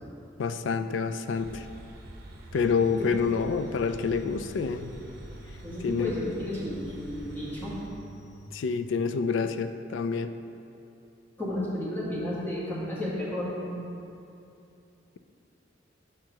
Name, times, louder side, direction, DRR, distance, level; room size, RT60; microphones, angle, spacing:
voice 1, 0.4-1.7 2.5-4.9 5.8-6.1 8.5-10.3, left 5 dB, 75° left, 10 dB, 0.4 m, -27 dB
sound 1, 1.3-7.9, right 1 dB, 60° right, 0.7 m, -46 dB
sound 2, 2.5-8.5, right 1 dB, 5° right, 1.1 m, -50 dB
voice 2, 5.6-7.8 11.4-13.8, left 1 dB, 10° left, -8 dB, 1.7 m, -33 dB
5.8 x 4.5 x 6.2 m, 2.7 s
head